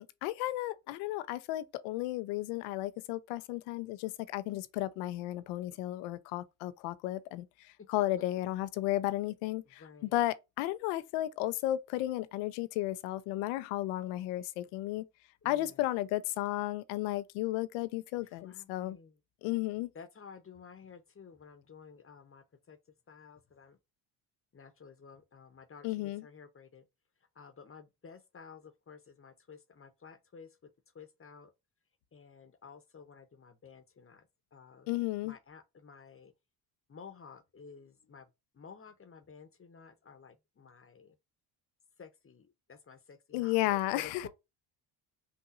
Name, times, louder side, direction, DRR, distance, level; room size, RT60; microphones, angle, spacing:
voice 1, 0.0-9.8 10.1-15.1 15.4-19.0 19.4-19.9 25.8-26.2 34.9-35.3 43.3-44.3, left 16 dB, 85° left, 0.7 m, -34 dB
voice 2, 9.6-10.3 15.4-15.9 18.2-19.2 19.9-22.8 23.1-23.8 24.5-26.8 27.3-30.6 30.9-31.5 32.1-34.2 34.5-34.9 35.2-36.3 36.9-38.3 38.5-41.2 42.0-44.3, left 6 dB, 25° left, 0.9 m, -53 dB
5.7 x 2.7 x 2.4 m
supercardioid pair, 75°, 49 cm